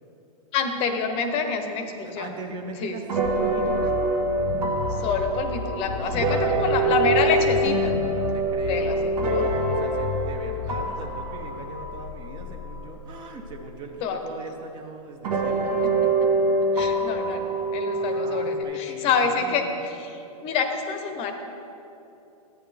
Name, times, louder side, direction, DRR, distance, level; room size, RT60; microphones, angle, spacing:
voice 1, 0.5-2.3 2.8-3.0 5.0-7.9 8.7-9.5 14.0-14.2 16.7-19.7 20.0-20.1 20.4-21.3, left 5 dB, 30° left, 6 dB, 0.8 m, -27 dB
sound 1, 1.8-2.0 3.1-13.0 13.7-13.8 15.2-18.6, right 2 dB, 85° right, 1.6 m, -25 dB
voice 2, 2.0-4.2 6.0-7.6 8.1-15.8 17.9-19.8, right 4 dB, 25° right, 4 dB, 0.6 m, -39 dB
sound 2, 3.2-14.1, left 8 dB, 70° left, 0.4 m, -34 dB
12.0 x 9.1 x 3.4 m, 2.9 s
hypercardioid pair, 145°, 19 cm